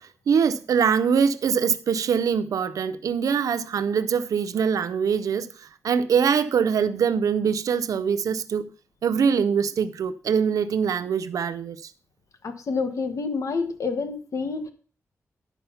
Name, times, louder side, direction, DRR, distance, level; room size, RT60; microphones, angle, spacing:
voice 1, 0.3-8.7 9.0-11.9, right 6 dB, 85° right, 0.5 m, -23 dB
voice 2, 12.4-14.7, left 4 dB, 65° left, 1.2 m, -28 dB
10.0 x 5.6 x 5.6 m
wide cardioid pair, 135°, 6 cm